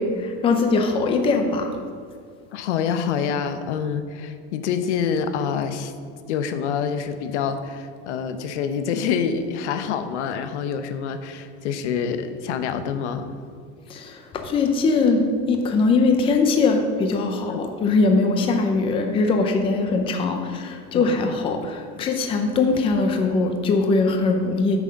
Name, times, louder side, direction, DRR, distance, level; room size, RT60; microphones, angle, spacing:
voice 1, 0.0-1.7 13.9-24.8, left 3 dB, 15° left, 4 dB, 0.6 m, -21 dB
voice 2, 2.5-5.9 6.3-13.4 17.5-17.6 20.9-21.4, left 7 dB, 85° left, 9 dB, 1.0 m, -26 dB
9.0 x 6.5 x 5.3 m, 2.2 s
supercardioid pair, 165°, 34 cm